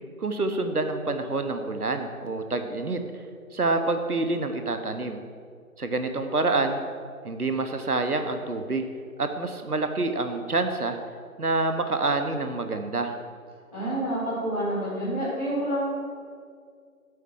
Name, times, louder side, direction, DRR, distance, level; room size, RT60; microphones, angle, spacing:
voice 1, 0.2-3.0 3.5-5.2 5.8-6.8 7.2-8.9 9.2-11.0 11.4-13.1, right 3 dB, 85° right, 7 dB, 1.0 m, -27 dB
voice 2, 13.7-15.9, right 1 dB, ahead, -44 dB, 2.1 m, -28 dB
8.2 x 4.7 x 7.3 m, 2.1 s
figure-of-eight pair, 170°, 44 cm